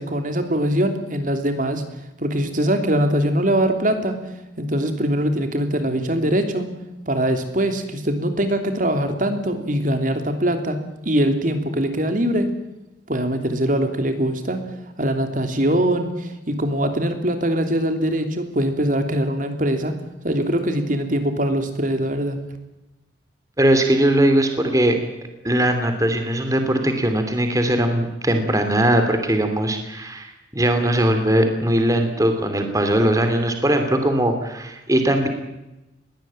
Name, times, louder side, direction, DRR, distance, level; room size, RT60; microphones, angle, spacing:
voice 1, 0.0-1.8 2.2-4.2 4.6-6.7 7.1-10.8 11.0-12.5 13.1-14.6 15.0-19.9 20.2-22.4, right 1 dB, 50° right, 7 dB, 3.1 m, -22 dB
voice 2, 23.6-25.0 25.4-35.3, right 1 dB, 20° right, 6 dB, 2.8 m, -20 dB
21.5 x 17.5 x 8.9 m, 0.97 s
head